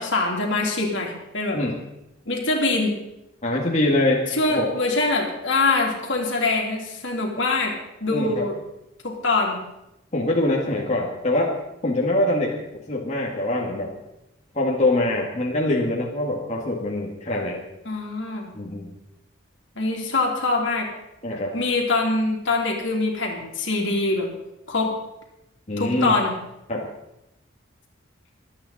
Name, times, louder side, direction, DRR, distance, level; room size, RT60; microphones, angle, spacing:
voice 1, 0.0-1.6 2.3-2.9 4.3-7.7 8.0-8.6 9.0-9.6 17.8-18.5 19.7-20.9 21.5-24.3 24.7-24.9 25.8-26.3, left 3 dB, 70° left, 0 dB, 3.2 m, -23 dB
voice 2, 3.4-4.7 8.1-8.5 10.1-11.5 11.8-13.9 14.5-17.6 18.5-18.9 21.2-21.5 25.7-26.2 26.7-26.9, left 1 dB, 35° left, -2 dB, 2.0 m, -24 dB
25.0 x 9.1 x 4.2 m, 0.89 s
head